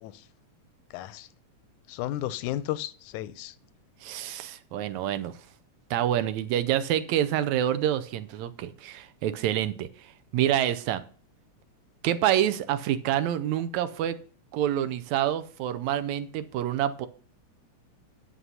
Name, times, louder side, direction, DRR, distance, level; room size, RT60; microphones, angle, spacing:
voice 1, 0.9-1.3 1.9-3.5, left 13 dB, 90° left, 2.0 m, -33 dB
voice 2, 4.0-5.3 5.9-9.9 10.3-11.0 12.0-14.2 14.5-17.1, right 11 dB, 80° right, 2.0 m, -27 dB
9.7 x 5.9 x 5.6 m
omnidirectional pair, 3.3 m